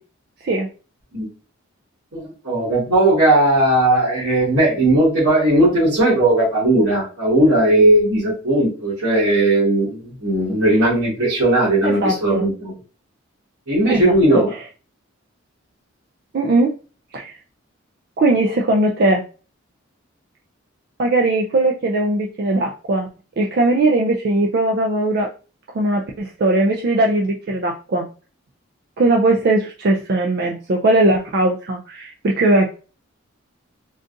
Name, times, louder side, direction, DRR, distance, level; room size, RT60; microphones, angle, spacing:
voice 1, 2.1-12.7 13.7-14.5, right 1 dB, 85° right, -10 dB, 1.8 m, -17 dB
voice 2, 11.8-12.5 13.9-14.2 14.5-14.6 16.3-16.7 17.1-17.4 18.2-19.2 21.0-23.1 23.4-25.3 25.7-28.1 29.0-32.7, right 2 dB, 50° right, 1 dB, 0.4 m, -19 dB
3.7 x 2.4 x 2.5 m, 0.36 s
head